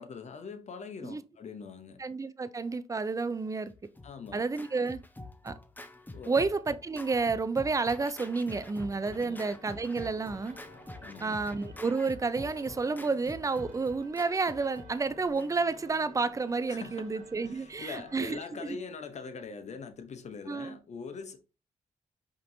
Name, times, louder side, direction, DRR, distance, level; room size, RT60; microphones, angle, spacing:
voice 1, 0.0-2.0 4.0-4.4 6.1-6.4 9.2-9.4 11.0-11.4 16.7-21.4, left 5 dB, 55° left, 0.8 m, -43 dB
voice 2, 2.0-3.7 4.3-5.0 5.4-5.6 6.3-10.6 11.2-18.8 20.5-20.8, right 4 dB, 25° right, 0.5 m, -30 dB
Scratching (performance technique), 3.7-15.8, left 2 dB, 15° left, 0.7 m, -47 dB
sound 1, 8.9-18.4, right 1 dB, 70° right, 1.2 m, -54 dB
5.0 x 2.8 x 2.7 m
supercardioid pair, 45°, 14 cm